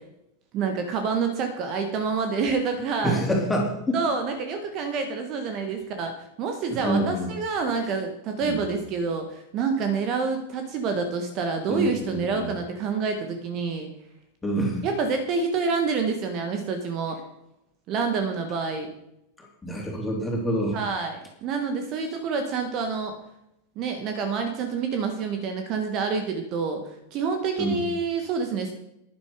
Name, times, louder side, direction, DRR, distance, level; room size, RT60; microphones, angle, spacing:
voice 1, 0.5-3.2 3.9-13.9 14.8-17.2 17.9-18.9 20.7-23.1 23.8-26.8 27.1-28.7, right 5 dB, 35° right, 6 dB, 1.6 m, -27 dB
voice 2, 3.0-4.0 6.7-7.3 8.4-8.6 11.7-12.5 14.4-14.8 19.4-20.8 27.6-27.8, right 1 dB, 10° left, -1 dB, 3.6 m, -27 dB
11.0 x 10.5 x 5.1 m, 0.82 s
figure-of-eight pair, 90°, 0 cm